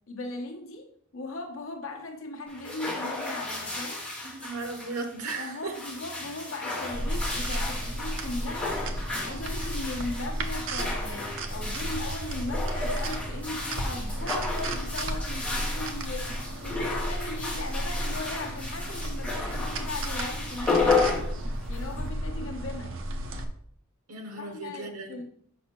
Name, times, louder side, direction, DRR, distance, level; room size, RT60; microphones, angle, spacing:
voice 1, 0.1-4.1 5.4-21.0 21.7-22.9 24.4-25.3, left 2 dB, 65° left, 3 dB, 1.0 m, -38 dB
sound 1, 2.5-22.1, left 3 dB, 5° left, 1.9 m, -33 dB
voice 2, 4.2-5.7 24.1-25.2, right 3 dB, 90° right, 4 dB, 0.9 m, -36 dB
sound 2, 6.9-23.4, right 1 dB, 65° right, 0.7 m, -33 dB
6.4 x 5.4 x 2.9 m, 0.63 s
head